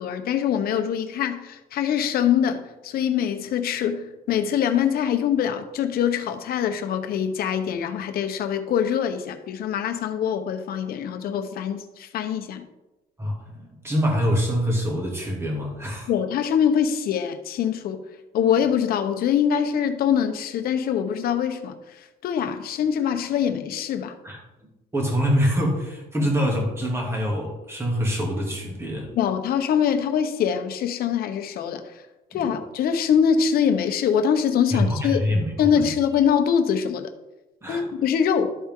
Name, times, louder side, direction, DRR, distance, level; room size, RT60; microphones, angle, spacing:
voice 1, 0.0-12.7 16.1-18.0 18.3-24.1 29.1-32.0 32.3-35.3 35.6-37.1 37.7-38.5, left 8 dB, 65° left, 0.9 m, -24 dB
voice 2, 13.2-16.1 22.4-22.5 24.2-24.4 24.9-29.1 32.3-32.6 34.7-35.9 37.6-37.9, equal, 15° right, 2.4 m, -25 dB
12.5 x 4.3 x 3.7 m
cardioid pair, 110°, 17 cm